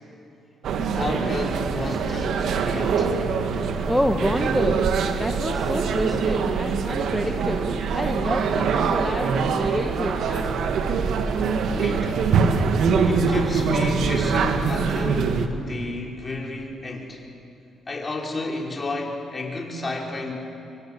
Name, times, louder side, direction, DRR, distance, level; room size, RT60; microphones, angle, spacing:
sound 1, 0.6-15.5, right 5 dB, 70° right, 1.8 m, -23 dB
voice 1, 0.8-3.1 11.7-12.3 13.0-17.2 17.9-20.3, left 2 dB, 25° left, -1 dB, 5.5 m, -31 dB
voice 2, 3.8-4.9 5.1-10.7, equal, 5° left, 3 dB, 1.4 m, -28 dB
26.5 x 23.5 x 8.7 m, 2.8 s
cardioid pair, 90°, 0 cm